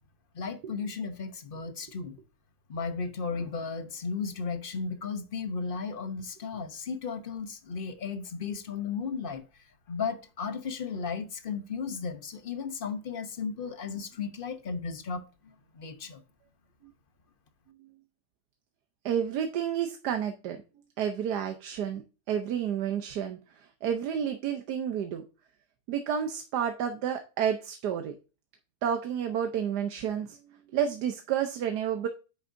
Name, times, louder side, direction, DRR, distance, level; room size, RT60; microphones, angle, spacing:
voice 1, 0.3-2.2 2.7-9.4 9.9-16.2, left 5 dB, 40° left, 0.9 m, -35 dB
voice 2, 19.0-20.6 21.0-22.0 22.3-25.2 25.9-28.1 28.8-30.4 30.7-32.1, right 8 dB, 85° right, 1.4 m, -30 dB
9.4 x 6.4 x 2.6 m
omnidirectional pair, 1.7 m